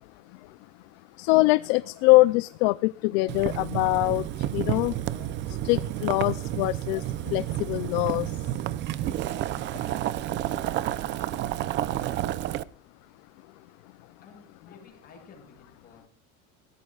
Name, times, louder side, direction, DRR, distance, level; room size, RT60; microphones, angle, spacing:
voice 1, 1.2-4.9 5.5-8.4, left 21 dB, 60° left, 16 dB, 0.6 m, -23 dB
Boiling, 3.3-12.6, right 13 dB, 30° right, 0.6 m, -30 dB
voice 2, 9.2-11.4 11.9-12.6 14.2-16.1, left 4 dB, 25° left, 2 dB, 7.1 m, -52 dB
21.5 x 16.5 x 2.4 m, 0.39 s
cardioid pair, 165°, 35 cm